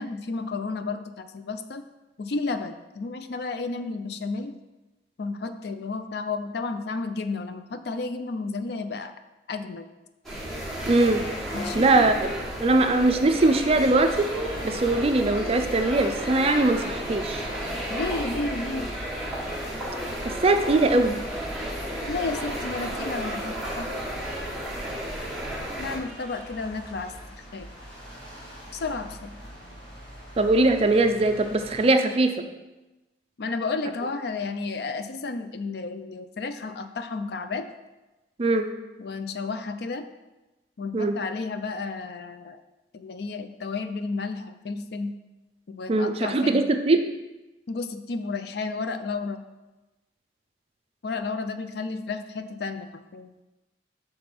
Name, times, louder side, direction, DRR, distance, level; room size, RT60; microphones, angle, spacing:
voice 1, 0.0-1.8 2.2-4.6 5.2-9.1 9.5-9.9 11.5-11.9 17.9-18.9 20.7-21.2 22.1-23.9 25.8-27.1 27.5-27.7 28.7-29.4 33.4-37.7 39.0-40.0 40.8-42.6 42.9-45.2 45.7-46.6 47.7-49.4 51.0-53.3, left 3 dB, 60° left, 10 dB, 0.4 m, -32 dB
sound 1, 10.2-26.0, equal, ahead, 1.5 m, -33 dB
voice 2, 10.9-11.2 11.7-12.3 12.6-14.3 14.6-17.5 20.2-21.1 30.4-32.4 38.4-38.7 40.9-41.1 45.9-47.0, right 2 dB, 35° right, 7 dB, 0.4 m, -21 dB
sound 2, 13.4-31.9, equal, 25° left, 2.0 m, -44 dB
6.1 x 3.8 x 5.9 m, 1.1 s
head